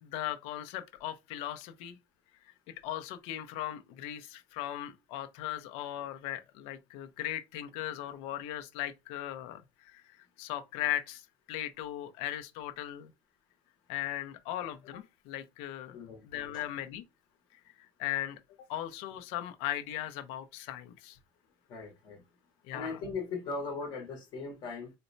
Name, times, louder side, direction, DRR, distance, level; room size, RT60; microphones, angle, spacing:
voice 1, 0.0-2.0 2.4-13.1 13.9-17.0 17.5-18.4 18.7-21.2 22.6-23.0, left 12 dB, 65° left, 0.6 m, -38 dB
voice 2, 21.7-22.2 22.7-24.9, left 4 dB, 40° left, 0.9 m, -38 dB
4.0 x 2.1 x 2.6 m
cardioid pair, 175°, 11 cm